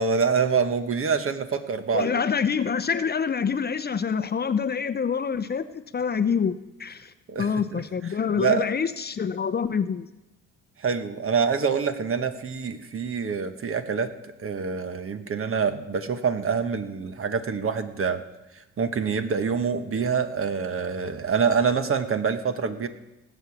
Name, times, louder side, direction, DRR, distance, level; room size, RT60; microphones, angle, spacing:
voice 1, 0.0-2.2 7.3-7.8 8.4-8.7 10.8-14.1 14.4-18.2 18.5-22.9, right 6 dB, 45° right, 9 dB, 1.3 m, -26 dB
voice 2, 1.9-7.1 7.4-10.1, left 6 dB, 35° left, 12 dB, 0.7 m, -26 dB
18.5 x 8.1 x 7.2 m, 0.98 s
cardioid pair, 90°, 30 cm